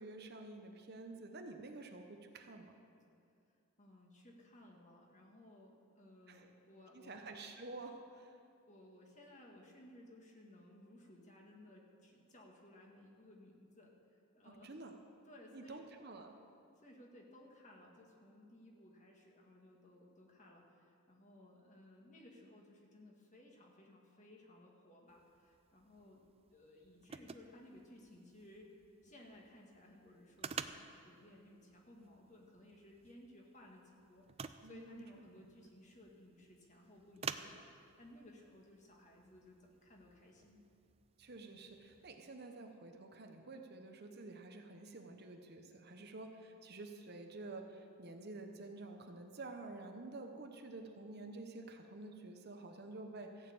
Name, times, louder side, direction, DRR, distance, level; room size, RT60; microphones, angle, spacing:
voice 1, 0.0-2.8 6.3-6.5 6.9-8.4 14.4-14.9 15.5-16.3 34.6-35.3 41.2-53.5, right 2 dB, 50° right, 4 dB, 0.9 m, -50 dB
voice 2, 3.8-7.2 8.7-14.7 15.3-15.8 16.8-26.3 26.5-28.7 29.0-40.6, left 1 dB, 35° left, -1 dB, 1.8 m, -59 dB
sound 1, 25.1-42.2, right 6 dB, 25° right, 0.4 m, -52 dB
14.5 x 6.6 x 8.8 m, 2.4 s
head